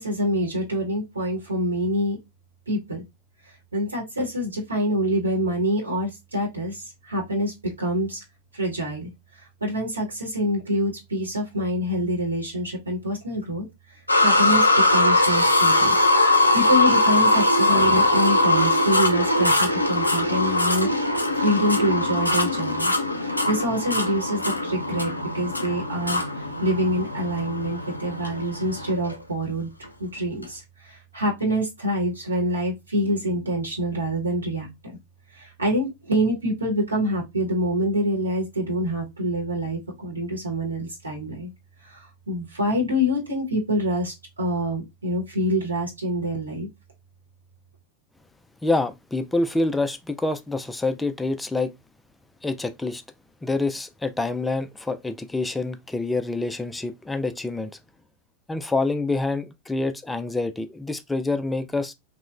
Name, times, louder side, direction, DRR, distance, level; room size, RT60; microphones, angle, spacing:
voice 1, 0.0-2.2 2.7-3.0 3.5-8.2 8.5-16.0 16.5-20.9 21.3-22.9 23.2-29.7 30.0-34.7 35.3-41.5 41.8-46.7, equal, 80° right, 0.9 m, -26 dB
sound 1, 14.1-29.2 29.8-29.9 30.4-30.5, left 2 dB, 85° left, 0.4 m, -21 dB
voice 2, 48.6-51.7 52.4-53.0 53.4-57.7 58.5-61.9, left 2 dB, 10° left, 0.3 m, -26 dB
2.8 x 2.0 x 2.3 m
figure-of-eight pair, 90°, 0 cm